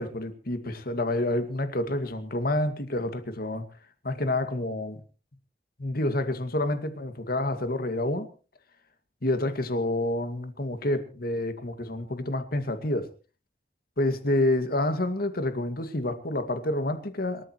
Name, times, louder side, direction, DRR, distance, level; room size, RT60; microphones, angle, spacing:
voice 1, 0.0-3.7 4.0-5.0 5.8-8.3 9.2-13.1 14.0-17.4, left 1 dB, 55° left, 2.2 m, -28 dB
27.5 x 14.0 x 3.1 m
head